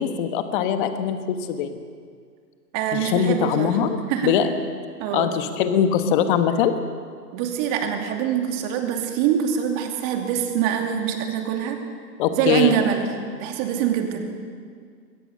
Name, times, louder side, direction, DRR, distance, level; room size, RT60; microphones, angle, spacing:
voice 1, 0.0-1.8 2.9-4.5 5.1-6.7 12.2-12.7, left 8 dB, 30° left, 8 dB, 1.5 m, -22 dB
voice 2, 2.7-3.7 4.1-4.3 5.0-5.3 7.3-11.8 12.3-13.0 13.4-14.3, right 9 dB, 25° right, 4 dB, 2.4 m, -24 dB
21.5 x 17.5 x 6.8 m, 2.1 s
hypercardioid pair, 135°, 49 cm